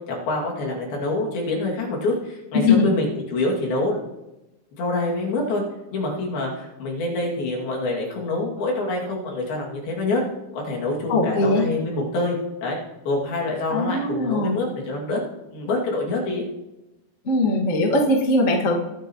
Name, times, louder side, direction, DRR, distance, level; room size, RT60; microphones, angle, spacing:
voice 1, 0.1-4.0 4.8-5.6 5.9-10.2 10.5-12.4 12.6-12.8 13.1-15.2 15.5-16.4, left 2 dB, 70° left, -2 dB, 4.2 m, -26 dB
voice 2, 2.5-2.9 11.1-11.6 13.7-14.6 17.2-18.7, left 2 dB, 45° left, -2 dB, 1.0 m, -20 dB
21.0 x 9.1 x 3.0 m, 0.97 s
omnidirectional pair, 4.6 m